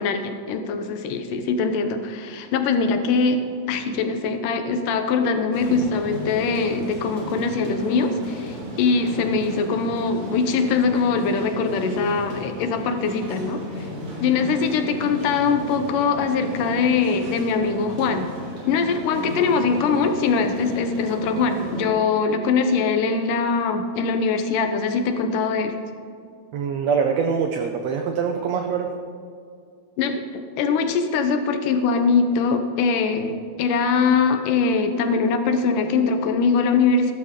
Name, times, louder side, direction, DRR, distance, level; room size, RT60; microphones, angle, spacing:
voice 1, 0.0-3.4 3.7-13.9 14.2-18.3 18.7-25.7 30.0-30.2 30.6-37.1, left 5 dB, 75° left, 7 dB, 2.3 m, -22 dB
sound 1, 5.5-21.9, right 1 dB, 45° right, 2.7 m, -35 dB
voice 2, 26.5-28.9, right 6 dB, 85° right, 5 dB, 1.5 m, -24 dB
14.0 x 13.0 x 3.7 m, 2.3 s
omnidirectional pair, 3.9 m